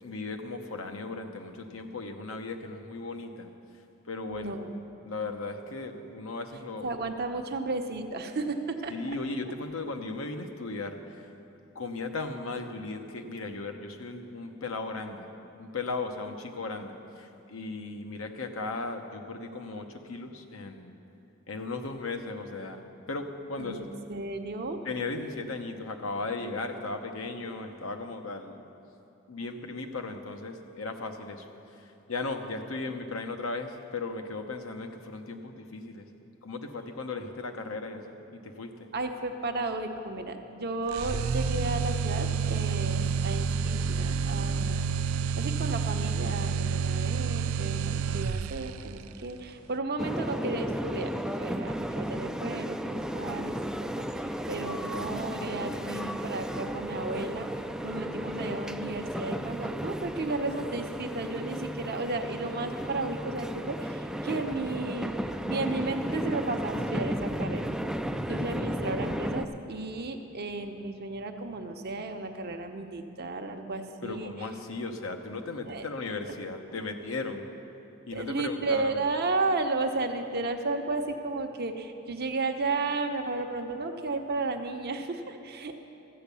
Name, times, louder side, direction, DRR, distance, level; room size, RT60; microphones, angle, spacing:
voice 1, 0.0-3.5 4.1-4.6 5.0-6.9 8.9-11.2 11.7-15.3 15.6-21.0 21.5-22.8 23.1-23.9 24.8-28.6 29.3-31.5 32.1-36.1 36.4-38.1 38.4-38.7 74.0-77.5 78.1-79.0, left 3 dB, 75° left, 5 dB, 0.9 m, -36 dB
voice 2, 4.3-4.8 6.8-8.9 23.6-24.8 38.9-44.8 45.4-51.1 51.4-54.1 54.5-57.5 57.8-65.1 65.4-67.6 68.3-74.3 75.7-75.9 76.3-76.4 78.1-85.9, right 3 dB, 50° right, 5 dB, 0.8 m, -33 dB
sound 1, 40.9-48.9, right 6 dB, 75° right, 0.3 m, -29 dB
sound 2, 50.0-69.4, equal, 5° right, 0.4 m, -34 dB
13.5 x 8.2 x 6.9 m, 2.9 s
head